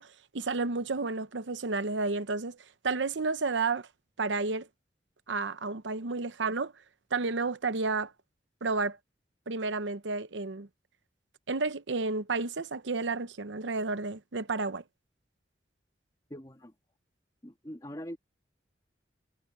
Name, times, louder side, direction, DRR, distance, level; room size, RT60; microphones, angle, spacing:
voice 1, 0.0-2.6 2.8-3.9 4.2-4.7 5.3-6.7 7.1-8.1 8.6-9.0 9.5-10.7 11.5-14.8, right 3 dB, 85° right, 0.8 m, -31 dB
voice 2, 16.3-16.7 17.4-18.2, equal, 20° left, 2.0 m, -42 dB
head